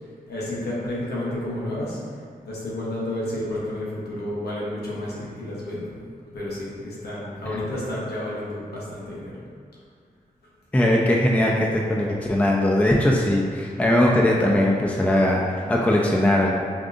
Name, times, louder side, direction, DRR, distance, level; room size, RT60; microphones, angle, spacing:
voice 1, 0.3-2.0 2.5-5.9 6.3-9.4, left 1 dB, 85° left, -6 dB, 0.9 m, -31 dB
voice 2, 10.7-16.6, left 1 dB, 10° left, -2 dB, 0.4 m, -20 dB
4.9 x 2.5 x 2.5 m, 2.1 s
cardioid pair, 60°, 16 cm